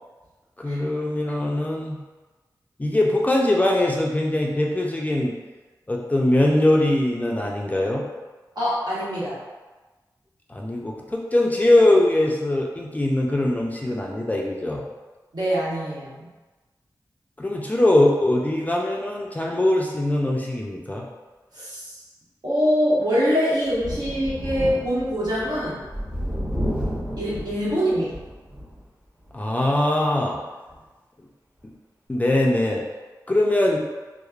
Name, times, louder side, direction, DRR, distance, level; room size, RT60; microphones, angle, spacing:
voice 1, 0.6-2.0 2.8-5.3 5.9-8.0 10.5-14.9 17.4-21.1 29.3-30.4 32.1-32.8 33.3-33.8, left 1 dB, 20° left, -2 dB, 0.3 m, -21 dB
voice 2, 8.5-9.4 15.3-16.3 21.5-22.0 22.4-25.8 27.2-28.1, equal, 65° right, -9 dB, 1.1 m, -24 dB
Thunder, 23.7-28.8 29.3-29.4 30.7-30.8, equal, 15° right, 0.9 m, -31 dB
3.0 x 2.0 x 2.3 m, 1.2 s
wide cardioid pair, 70°, 8 cm